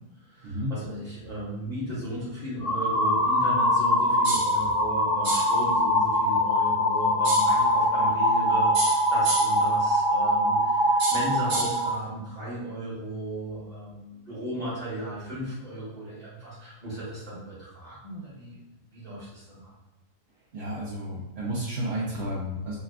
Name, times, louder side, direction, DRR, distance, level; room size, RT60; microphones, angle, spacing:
voice 1, 0.2-18.6 18.9-19.7, right 1 dB, 30° right, -9 dB, 1.2 m, -36 dB
sound 1, 2.6-11.9, equal, 30° left, 0.8 m, -23 dB
sound 2, 4.2-4.6 5.2-5.6 7.2-7.6 8.7-9.6 11.0-11.8, right 2 dB, 90° right, 1.2 m, -30 dB
voice 2, 20.5-22.8, right 1 dB, 60° right, -7 dB, 0.7 m, -31 dB
3.2 x 2.3 x 2.3 m, 0.98 s
omnidirectional pair, 1.7 m